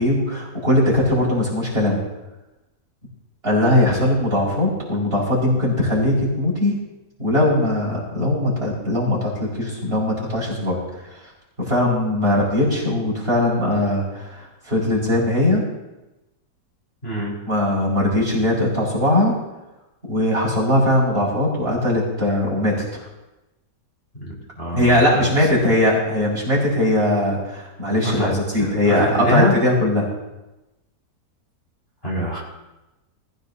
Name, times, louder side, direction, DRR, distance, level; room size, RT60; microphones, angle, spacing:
voice 1, 0.0-2.0 3.4-6.8 7.2-11.3 11.6-15.6 17.5-19.3 20.1-23.1 24.7-30.1, left 1 dB, 30° right, -5 dB, 5.6 m, -20 dB
voice 2, 17.0-17.3 24.2-25.3 28.0-28.3 28.6-29.5 32.0-32.4, equal, 30° left, -5 dB, 5.0 m, -24 dB
21.0 x 15.0 x 2.8 m, 1.0 s
omnidirectional pair, 1.9 m